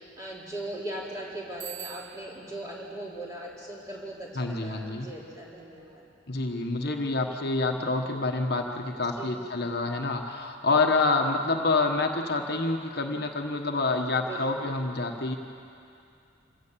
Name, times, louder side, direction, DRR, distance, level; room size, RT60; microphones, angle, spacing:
voice 1, 0.0-6.0 9.2-9.5 14.1-14.8, right 1 dB, 15° right, -5 dB, 4.1 m, -39 dB
Bicycle bell, 1.6-2.6, right 10 dB, 85° right, 1.7 m, -42 dB
voice 2, 4.4-5.1 6.3-15.4, left 3 dB, 55° left, 3 dB, 1.3 m, -27 dB
26.0 x 16.5 x 7.5 m, 2.6 s
head